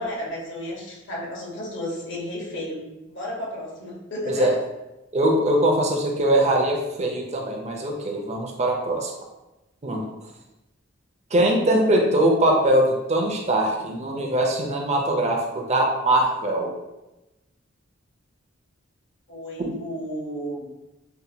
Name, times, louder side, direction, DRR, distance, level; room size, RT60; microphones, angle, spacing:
voice 1, 0.0-4.5 19.3-20.7, left 1 dB, 65° left, -3 dB, 1.1 m, -33 dB
voice 2, 5.1-9.1 9.8-10.0 11.3-16.7 19.7-19.8, right 1 dB, 35° right, 1 dB, 0.5 m, -22 dB
5.4 x 2.2 x 2.7 m, 1.0 s
head